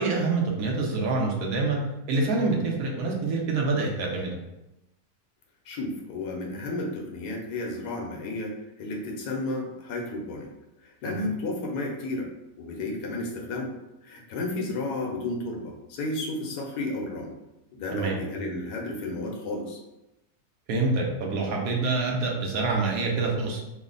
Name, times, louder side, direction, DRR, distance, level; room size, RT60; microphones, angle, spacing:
voice 1, 0.0-1.8 2.1-4.3 11.0-11.2 17.9-18.2 20.7-23.6, right 3 dB, 70° right, 0 dB, 1.1 m, -26 dB
voice 2, 5.7-10.5 11.0-12.3 12.6-13.7 14.1-17.3 17.7-19.8, left 2 dB, 90° left, 0 dB, 1.3 m, -32 dB
3.3 x 2.0 x 3.7 m, 0.93 s
omnidirectional pair, 1.6 m